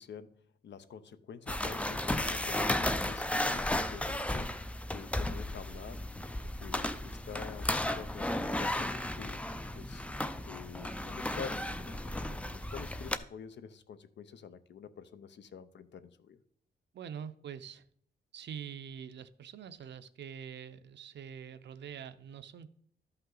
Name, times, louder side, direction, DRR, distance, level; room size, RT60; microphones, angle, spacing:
voice 1, 0.0-6.2 6.6-9.4 9.7-10.1 10.5-16.4, left 7 dB, 65° left, 12 dB, 0.7 m, -48 dB
sound 1, 1.5-13.2, left 1 dB, 5° left, 0.4 m, -34 dB
voice 2, 16.9-17.8 18.3-22.7, right 8 dB, 65° right, 12 dB, 0.6 m, -45 dB
12.5 x 5.6 x 3.9 m, 0.66 s
wide cardioid pair, 160°, 20 cm